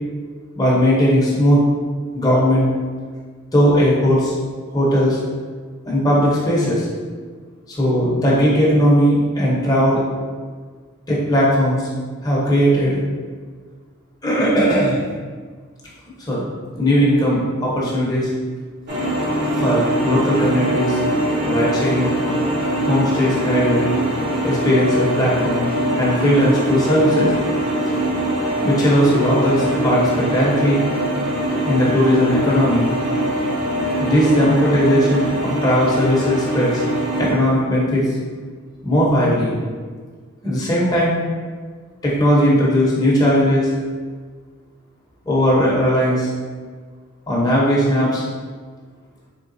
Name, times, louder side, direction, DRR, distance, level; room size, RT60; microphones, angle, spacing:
voice 1, 0.6-1.6 2.1-2.7 3.5-4.3 4.7-5.2 5.9-6.9 7.7-10.0 11.1-11.9 12.2-13.0 14.2-15.0 16.3-16.4 16.8-18.3 19.6-20.9 21.4-22.1 22.9-23.9 24.4-25.7 26.0-27.3 28.6-30.8 31.6-32.9 34.0-36.8 37.2-38.0 38.8-39.5 40.4-41.2 42.0-43.7 45.3-46.3 47.3-48.2, equal, 20° left, -6 dB, 0.8 m, -17 dB
sound 1, 18.9-37.3, right 1 dB, 50° right, 0.8 m, -22 dB
3.8 x 3.5 x 2.6 m, 1.5 s
head